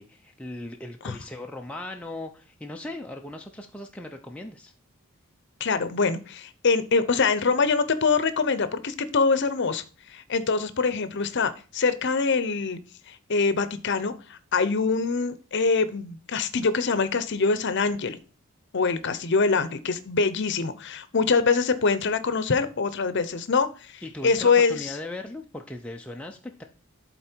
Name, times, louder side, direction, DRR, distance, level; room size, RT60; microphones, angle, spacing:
voice 1, 0.0-4.7 24.0-26.6, left 1 dB, 5° left, 2 dB, 0.5 m, -38 dB
voice 2, 5.6-9.8 10.1-12.8 13.1-18.2 18.7-23.7 23.9-24.9, left 4 dB, 55° left, 13 dB, 0.7 m, -24 dB
11.5 x 4.2 x 4.5 m, 0.37 s
head